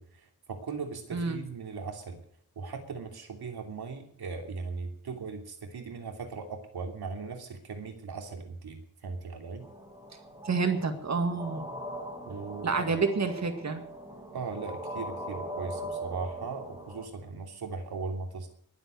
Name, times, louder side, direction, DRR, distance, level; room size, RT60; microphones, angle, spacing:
voice 1, 0.0-2.2 2.6-9.7 12.2-13.0 14.3-18.5, right 4 dB, 90° right, 3 dB, 3.0 m, -38 dB
voice 2, 1.1-1.4 10.4-11.7 12.6-13.8, right 4 dB, 45° right, 7 dB, 1.9 m, -28 dB
sound 1, 9.6-17.1, right 1 dB, 10° right, 3.0 m, -40 dB
21.5 x 7.9 x 6.5 m, 0.62 s
wide cardioid pair, 175°, 37 cm